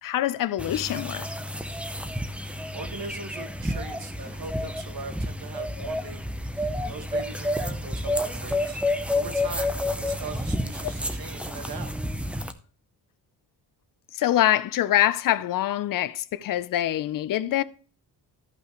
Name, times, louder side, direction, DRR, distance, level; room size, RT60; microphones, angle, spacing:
voice 1, 0.0-1.3 10.8-10.9 14.1-17.6, left 13 dB, 55° left, 0.6 m, -24 dB
sound 1, 0.6-12.5, left 1 dB, 5° right, 0.5 m, -30 dB
voice 2, 2.7-8.8 9.1-11.9, right 4 dB, 60° right, 1.7 m, -40 dB
14.5 x 5.6 x 3.0 m
wide cardioid pair, 170°, 40 cm